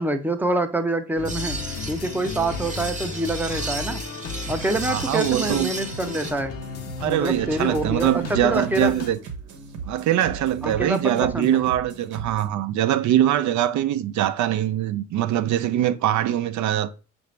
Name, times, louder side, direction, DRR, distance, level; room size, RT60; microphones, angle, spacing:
voice 1, 0.0-1.6 1.9-4.0 4.5-6.5 7.1-8.9 10.6-11.6, right 2 dB, 5° right, 0.5 m, -26 dB
sound 1, 1.2-9.1, left 5 dB, 55° left, 0.7 m, -34 dB
sound 2, 1.3-6.3, right 3 dB, 25° right, 0.8 m, -34 dB
sound 3, 4.3-12.5, right 5 dB, 90° right, 0.9 m, -39 dB
voice 2, 4.9-5.7 7.0-9.2 9.8-16.9, right 11 dB, 70° right, 0.5 m, -22 dB
5.7 x 2.6 x 3.2 m
cardioid pair, 90°, 30 cm